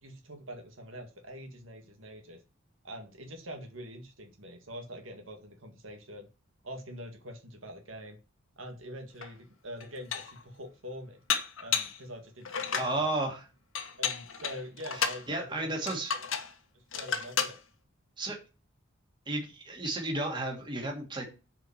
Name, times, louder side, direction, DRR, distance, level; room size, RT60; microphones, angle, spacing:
voice 1, 0.0-2.4 2.8-6.3 6.6-8.2 8.6-11.2 11.6-13.1 14.0-16.3 16.7-17.6, equal, 70° right, 4 dB, 1.9 m, -45 dB
Dishes pots and pans, 9.2-9.3 9.8-10.4 11.3-12.0 12.5-13.0 13.8-15.2 15.9-16.5 16.9-17.6, left 7 dB, 75° left, 1.5 m, -32 dB
voice 2, 12.8-13.5 14.9-16.1 18.2-18.4 19.3-21.3, right 2 dB, 20° right, 1 dB, 2.5 m, -33 dB
7.9 x 5.1 x 7.3 m, 0.31 s
head